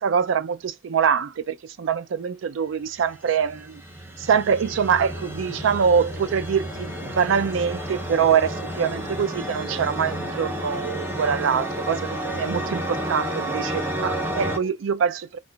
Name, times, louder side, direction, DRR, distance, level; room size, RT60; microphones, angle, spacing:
voice 1, 0.0-3.8 4.2-15.4, right 7 dB, 75° right, 0.4 m, -24 dB
sound 1, 3.0-14.6, right 1 dB, 10° right, 0.5 m, -31 dB
sound 2, 4.6-14.7, left 5 dB, 50° left, 0.3 m, -43 dB
3.6 x 2.4 x 2.3 m
head